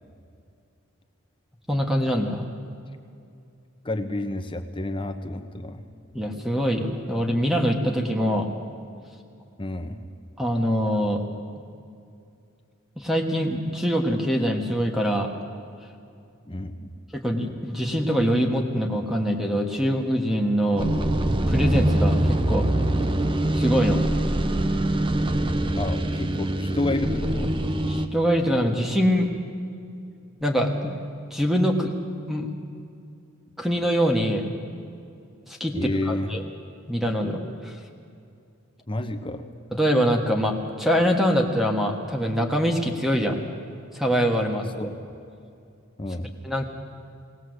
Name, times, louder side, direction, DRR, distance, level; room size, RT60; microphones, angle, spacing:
voice 1, 1.7-2.4 6.1-8.5 10.4-11.2 13.0-15.3 17.1-20.9 21.5-22.7 23.5-24.0 27.9-29.3 30.4-30.9 31.3-31.9 32.3-32.5 33.6-34.5 35.5-35.8 36.0-36.4 36.9-37.8 39.7-43.4 43.9-44.9 46.4-46.7, equal, ahead, 1 dB, 1.5 m, -24 dB
voice 2, 3.8-5.8 9.6-10.0 16.5-16.9 25.7-27.5 35.7-36.4 38.9-39.5 44.8-44.9 46.0-46.3, left 2 dB, 25° left, 7 dB, 1.1 m, -30 dB
sound 1, 20.8-28.1, right 1 dB, 25° right, 0.9 m, -23 dB
20.0 x 18.5 x 8.0 m, 2.5 s
head